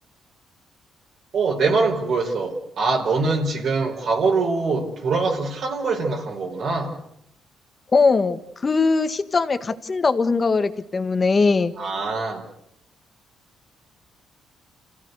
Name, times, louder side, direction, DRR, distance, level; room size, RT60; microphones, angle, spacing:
voice 1, 1.3-7.0 11.8-12.4, right 4 dB, 60° right, -1 dB, 4.6 m, -23 dB
voice 2, 7.9-11.7, left 4 dB, 35° left, 10 dB, 1.7 m, -20 dB
28.5 x 16.0 x 8.2 m, 0.79 s
cardioid pair, 90°, 0 cm